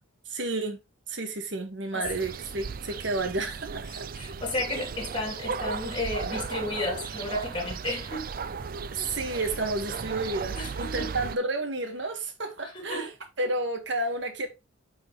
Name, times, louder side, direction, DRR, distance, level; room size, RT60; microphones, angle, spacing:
voice 1, 0.2-0.8 1.1-4.0 8.9-13.1 13.4-14.5, right 2 dB, 60° right, 1.7 m, -31 dB
sound 1, 2.0-11.4, right 5 dB, 45° right, 0.4 m, -36 dB
voice 2, 3.9-8.3 9.0-9.2 10.5-11.1 12.6-13.1, left 2 dB, 25° left, 2.7 m, -33 dB
8.8 x 4.8 x 3.2 m
head